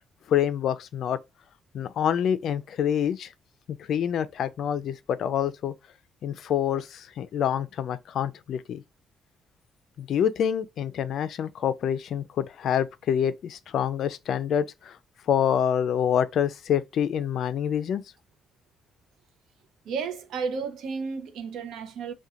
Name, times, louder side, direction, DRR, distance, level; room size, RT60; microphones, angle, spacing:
voice 1, 0.3-1.2 1.7-3.3 3.9-5.7 6.2-8.8 10.0-15.0 15.3-18.0, left 9 dB, 70° left, 0.3 m, -26 dB
voice 2, 19.9-22.1, right 5 dB, 80° right, 0.5 m, -32 dB
2.4 x 2.1 x 2.8 m
cardioid pair, 90°, 0 cm